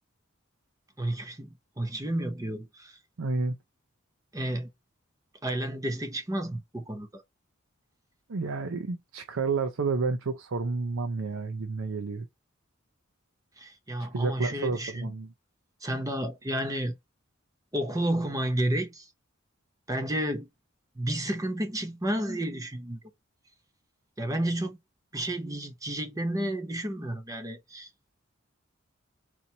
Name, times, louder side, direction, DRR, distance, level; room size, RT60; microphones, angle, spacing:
voice 1, 1.0-3.0 4.3-4.7 5.4-7.2 13.6-15.1 15.8-16.9 17.7-19.1 19.9-20.5 21.0-23.0 24.2-24.8 25.1-27.9, right 1 dB, 15° right, 0.8 m, -31 dB
voice 2, 3.2-3.6 8.3-12.3 14.1-15.3, right 4 dB, 80° right, 0.6 m, -30 dB
4.4 x 2.7 x 2.8 m
head